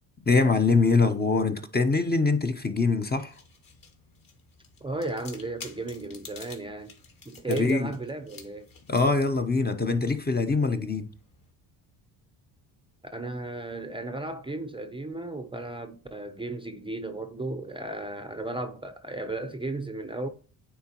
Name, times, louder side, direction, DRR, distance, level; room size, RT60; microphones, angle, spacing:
voice 1, 0.3-3.3 7.5-7.9 8.9-11.1, left 4 dB, 20° left, 0.9 m, -23 dB
sound 1, 3.0-11.5, left 5 dB, 45° left, 2.1 m, -50 dB
voice 2, 4.8-6.9 7.3-8.7 13.1-20.3, right 2 dB, 10° right, 0.7 m, -35 dB
9.4 x 3.7 x 3.0 m
supercardioid pair, 70°, 46 cm